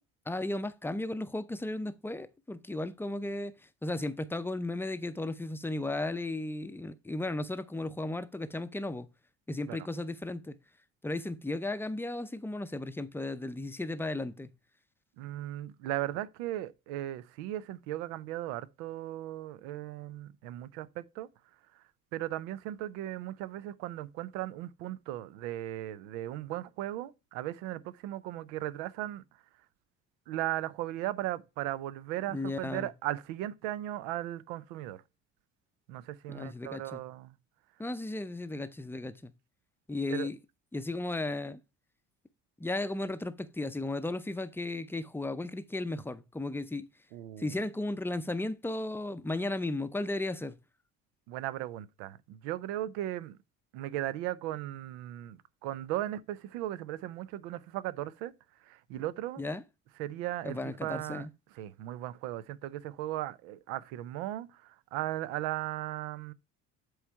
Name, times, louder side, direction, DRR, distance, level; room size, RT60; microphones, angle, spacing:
voice 1, 0.3-3.5 3.8-9.1 9.5-10.6 11.0-14.5 32.3-32.9 36.3-37.0 37.8-39.3 39.9-40.4 40.7-41.6 42.6-46.9 47.4-50.6 59.4-59.6 60.4-61.3, left 2 dB, 5° left, 0.5 m, -35 dB
voice 2, 15.2-21.3 21.7-21.8 22.1-29.2 30.3-35.0 35.9-37.4 40.1-40.3 47.1-47.6 51.3-53.4 53.7-58.3 58.6-59.4 60.0-61.3 61.5-66.3, right 14 dB, 90° right, 0.6 m, -37 dB
7.9 x 3.2 x 4.5 m
supercardioid pair, 75°, 37 cm